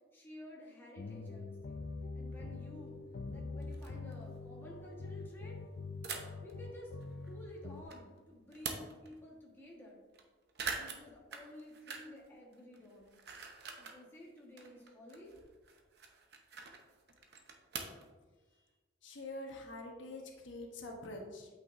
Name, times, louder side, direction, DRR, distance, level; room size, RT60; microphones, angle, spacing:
voice 1, 0.1-1.8 2.1-3.0 3.3-5.6 6.4-6.9 7.3-10.0 10.7-13.1 13.8-15.3 18.5-18.6, left 1 dB, 10° left, -4 dB, 1.3 m, -52 dB
sound 1, 1.0-7.8, left 3 dB, 60° left, 0.4 m, -44 dB
sound 2, 1.1-1.2 2.3-2.4 2.9-3.0 3.3-3.4 3.6-4.1 6.0-6.5 7.0-8.0 8.4-9.2 9.6-9.7 9.9-10.2 10.5-12.3 12.5-14.0 14.4-18.1, right 5 dB, 55° right, 0.8 m, -45 dB
voice 2, 19.0-21.5, left 2 dB, 80° left, 1 dB, 1.1 m, -45 dB
8.5 x 5.9 x 2.6 m, 1.3 s
head